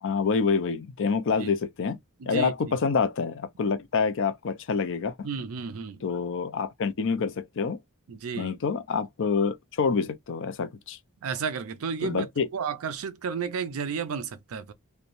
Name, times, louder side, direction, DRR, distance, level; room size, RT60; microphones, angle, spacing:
voice 1, 0.0-2.0 2.3-5.2 6.0-7.8 8.4-11.0 12.0-12.5, left 5 dB, 65° left, 0.5 m, -27 dB
voice 2, 2.2-2.8 5.2-6.0 8.1-8.6 11.2-12.3 12.5-14.7, right 6 dB, 85° right, 0.5 m, -32 dB
3.0 x 2.2 x 2.5 m
head